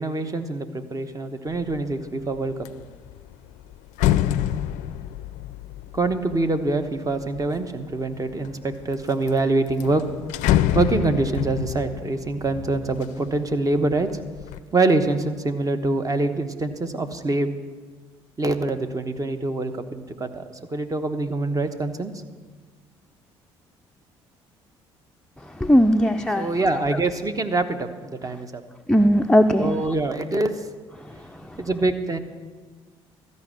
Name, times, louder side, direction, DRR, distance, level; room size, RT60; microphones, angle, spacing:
voice 1, 0.0-2.7 5.9-10.0 10.7-14.2 14.7-17.5 18.4-20.4 20.7-22.1 26.3-28.6 29.6-30.6 31.6-32.2, right 2 dB, 25° right, 8 dB, 1.1 m, -25 dB
sound 1, 1.6-1.9 2.3-7.6 8.3-8.9 9.3-9.4 9.7-13.6 14.0-14.6, left 12 dB, 65° left, 0.4 m, -27 dB
voice 2, 25.4-26.5 28.9-29.8 31.0-31.6, equal, 5° left, 5 dB, 0.5 m, -19 dB
13.0 x 5.3 x 8.9 m, 1.4 s
hypercardioid pair, 50°, 13 cm